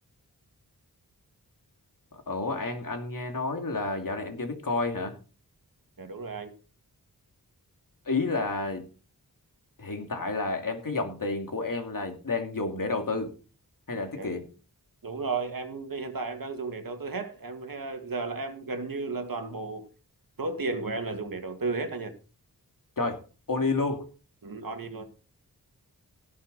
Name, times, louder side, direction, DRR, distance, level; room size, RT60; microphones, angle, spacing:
voice 1, 2.1-5.2 8.0-8.9 9.8-13.3 13.9-14.5 23.0-23.2 23.5-24.1, left 3 dB, 60° left, 2.6 m, -30 dB
voice 2, 6.0-6.5 14.2-14.3 15.0-19.9 20.4-22.1 24.4-25.1, right 3 dB, 65° right, 2.1 m, -34 dB
17.5 x 7.3 x 4.2 m
wide cardioid pair, 95°, 37 cm